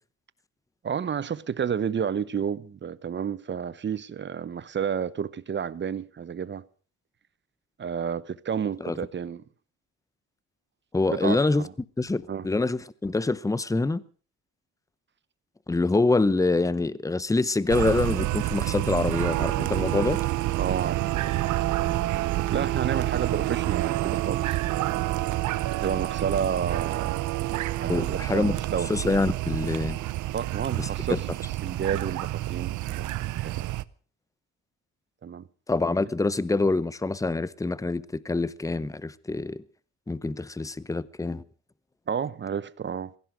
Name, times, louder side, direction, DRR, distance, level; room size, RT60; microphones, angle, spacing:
voice 1, 0.8-6.6 7.8-9.4 11.1-11.7 12.3-12.5 20.6-21.3 22.5-24.5 25.8-27.2 27.8-28.9 30.3-31.2 31.6-33.7 35.2-35.4 42.1-43.1, right 7 dB, 40° right, 0.9 m, -31 dB
voice 2, 10.9-11.7 12.0-14.0 15.7-20.2 27.9-28.6 28.9-30.0 30.8-31.2 35.7-39.6 40.1-41.4, left 3 dB, 10° left, 0.8 m, -25 dB
sound 1, 17.7-33.8, right 16 dB, 80° right, 0.7 m, -28 dB
16.5 x 16.0 x 5.1 m
cardioid pair, 90°, 30 cm